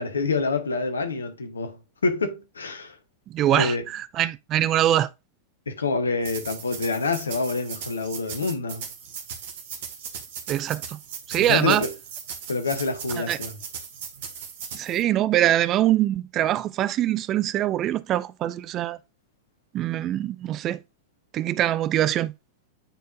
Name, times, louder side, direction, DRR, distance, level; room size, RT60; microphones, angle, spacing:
voice 1, 0.0-3.0 3.5-3.8 5.7-8.9 11.4-11.9 12.5-13.6, left 4 dB, 75° left, 1.2 m, -27 dB
voice 2, 3.3-5.1 10.5-11.0 11.3-11.8 13.2-13.4 14.7-19.0 19.7-20.8 21.3-22.3, right 12 dB, 35° right, 0.4 m, -23 dB
sound 1, 6.2-15.0, right 7 dB, 55° right, 1.6 m, -38 dB
8.9 x 4.5 x 2.4 m
figure-of-eight pair, 90°, 0 cm